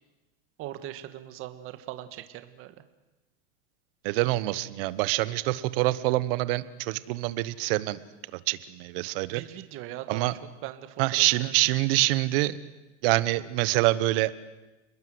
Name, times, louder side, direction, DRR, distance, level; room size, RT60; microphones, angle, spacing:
voice 1, 0.6-2.7 9.3-10.3 10.6-11.6, right 13 dB, 40° right, 9 dB, 1.7 m, -40 dB
voice 2, 4.0-8.0 8.5-9.4 10.1-10.3 11.0-12.6 13.0-14.3, right 18 dB, 55° right, 16 dB, 1.3 m, -25 dB
29.5 x 21.0 x 7.9 m, 1.1 s
supercardioid pair, 150°, 35 cm